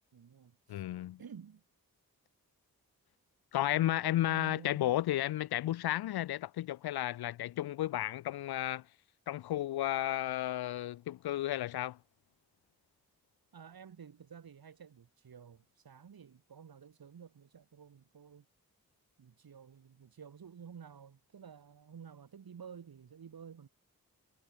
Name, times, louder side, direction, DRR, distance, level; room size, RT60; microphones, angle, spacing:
voice 1, 0.1-0.8 1.2-1.6 3.7-4.9 13.5-18.5 19.2-23.7, right 7 dB, 70° right, 2.2 m, -52 dB
voice 2, 0.7-1.2 3.5-8.9 9.3-12.0, left 14 dB, 85° left, 0.6 m, -33 dB
cardioid pair, 40°, 37 cm